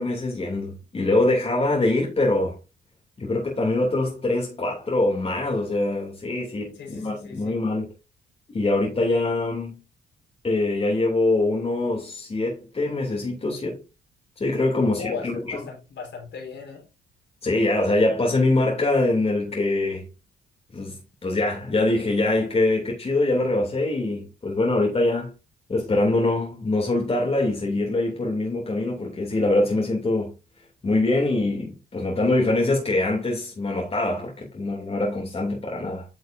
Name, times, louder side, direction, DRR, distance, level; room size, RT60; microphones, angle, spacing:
voice 1, 0.0-2.6 3.2-7.9 8.5-9.8 10.4-13.8 14.4-15.6 17.4-20.0 20.7-25.3 25.7-30.3 30.8-36.1, left 2 dB, 30° left, 2.7 m, -24 dB
voice 2, 6.7-7.6 14.8-16.8, left 5 dB, 65° left, 4.3 m, -36 dB
9.2 x 6.5 x 2.6 m
cardioid pair, 90°, 20 cm